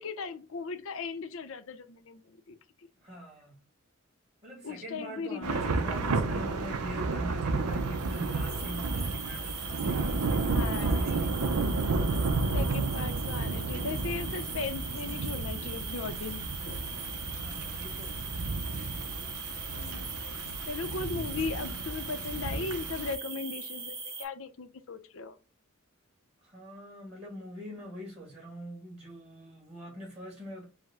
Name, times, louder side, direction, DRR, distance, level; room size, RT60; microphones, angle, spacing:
voice 1, 0.0-2.6 4.6-6.4 10.4-11.2 12.5-16.8 19.8-20.1 20.7-25.4, left 4 dB, 60° left, 0.6 m, -38 dB
voice 2, 3.0-3.6 4.4-11.5 17.4-18.2 26.4-30.7, equal, 30° right, 1.6 m, -43 dB
Thunder / Rain, 5.4-23.1, right 3 dB, 90° right, 0.5 m, -32 dB
sound 1, 7.7-24.2, right 4 dB, 45° right, 1.6 m, -40 dB
4.8 x 2.1 x 3.5 m
head